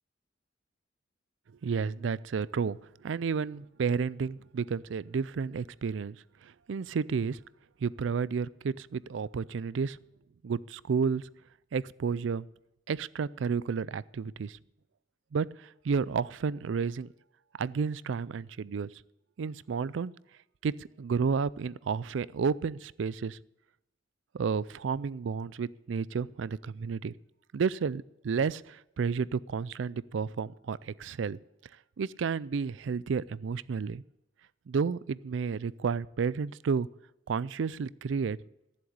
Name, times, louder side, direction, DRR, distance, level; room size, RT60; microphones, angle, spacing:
voice 1, 1.6-6.2 6.4-7.4 7.8-10.0 10.4-11.3 11.7-12.5 12.9-14.6 15.3-17.1 17.6-18.9 19.4-20.1 20.6-23.4 24.3-27.1 27.5-31.4 32.0-34.0 34.7-36.9 37.3-38.4, right 5 dB, 70° right, 21 dB, 0.4 m, -31 dB
14.0 x 7.6 x 8.7 m, 0.89 s
head